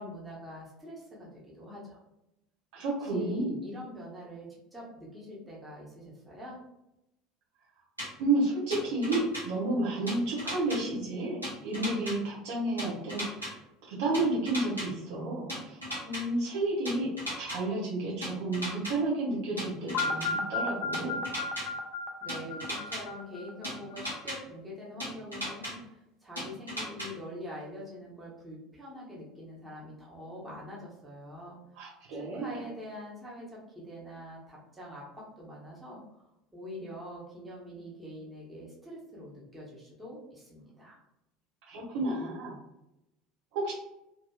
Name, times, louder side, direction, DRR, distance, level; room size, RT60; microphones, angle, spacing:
voice 1, 0.0-2.0 3.0-6.6 22.2-36.3 36.5-41.0, left 1 dB, 10° right, -6 dB, 1.1 m, -44 dB
voice 2, 2.7-3.5 8.2-13.6 13.9-17.1 17.4-21.2 31.8-32.6 41.7-42.6 43.5-43.7, right 2 dB, 55° right, -5 dB, 0.8 m, -31 dB
sound 1, 8.0-8.1 8.7-9.4 10.1-10.8 11.4-12.1 12.8-13.5 14.1-14.9 15.5-16.2 16.8-17.6 18.2-18.9 19.6-20.3 20.9-21.6 22.3-23.0 23.6-24.4 25.0-25.7 26.4-27.1, equal, 85° right, 0.8 m, -36 dB
sound 2, 19.9-23.9, left 3 dB, 50° left, 0.4 m, -34 dB
2.8 x 2.6 x 2.3 m, 0.88 s
figure-of-eight pair, 70°, 0 cm